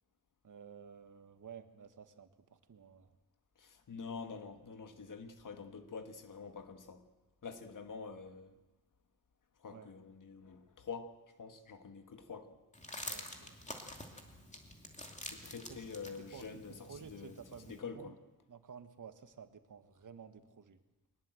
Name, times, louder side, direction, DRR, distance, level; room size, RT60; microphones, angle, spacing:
voice 1, 0.4-3.2 9.7-9.9 13.1-13.8 15.7-15.8 16.1-18.1 18.5-20.8, right 7 dB, 60° right, 1.6 m, -53 dB
voice 2, 3.6-7.1 7.4-8.6 9.6-12.6 15.2-18.2, left 5 dB, 60° left, 1.7 m, -47 dB
sound 1, 12.7-17.8, left 1 dB, 20° left, 2.6 m, -48 dB
22.5 x 20.0 x 7.8 m
wide cardioid pair, 140°, 35 cm